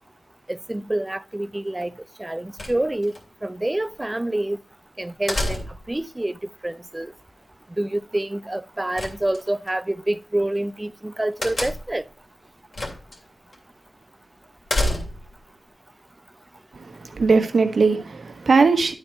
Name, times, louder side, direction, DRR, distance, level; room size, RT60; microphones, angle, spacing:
voice 1, 0.5-1.9 2.2-3.1 3.4-4.6 5.0-7.1 7.8-12.0, right 1 dB, 20° right, 0.5 m, -27 dB
sound 1, 2.6-3.2 5.3-6.0 9.0-9.7 11.4-12.0 12.7-13.2 13.5-13.6 14.7-15.4, left 1 dB, 60° left, 2.7 m, -27 dB
voice 2, 16.7-18.9, right 4 dB, 75° right, 1.2 m, -20 dB
11.0 x 4.3 x 4.4 m
cardioid pair, 60°, 0 cm